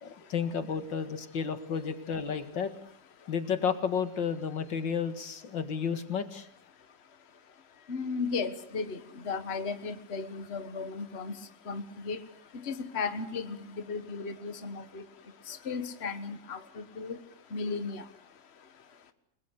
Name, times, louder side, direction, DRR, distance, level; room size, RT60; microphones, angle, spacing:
voice 1, 0.0-2.7 3.3-6.5, left 6 dB, 90° left, 9 dB, 2.6 m, -32 dB
voice 2, 7.9-9.0 9.3-11.3 11.7-12.2 12.7-13.6 13.9-15.0 15.5-17.2 17.5-18.0, left 4 dB, 35° left, 10 dB, 1.7 m, -35 dB
29.5 x 21.0 x 8.3 m, 0.69 s
omnidirectional pair, 1.9 m